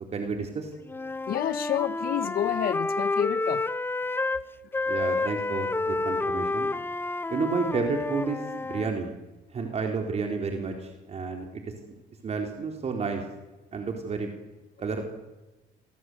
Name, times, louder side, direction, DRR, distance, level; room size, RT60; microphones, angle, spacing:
voice 1, 0.1-0.7 4.9-6.7 7.3-9.1 9.5-11.6 12.2-13.2 13.7-14.3 14.8-15.1, right 4 dB, 40° right, 3 dB, 4.3 m, -31 dB
Wind instrument woodwind instrument, 0.9-4.4 4.7-8.9, left 2 dB, 15° left, 0.9 m, -29 dB
voice 2, 1.3-3.6, left 11 dB, 60° left, 15 dB, 1.0 m, -29 dB
29.5 x 23.0 x 8.2 m, 1.1 s
cardioid pair, 110°, 17 cm